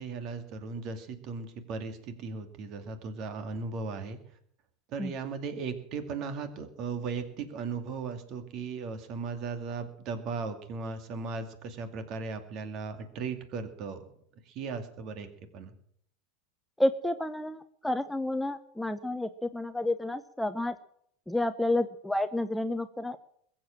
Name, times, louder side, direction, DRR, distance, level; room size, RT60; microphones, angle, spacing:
voice 1, 0.0-4.2 4.9-14.1 14.5-15.3 15.5-15.7, right 4 dB, 45° right, 8 dB, 2.4 m, -37 dB
voice 2, 16.8-20.7 21.3-23.2, left 1 dB, 5° left, 10 dB, 0.8 m, -30 dB
21.5 x 7.7 x 7.5 m, 0.68 s
hypercardioid pair, 85°, 0 cm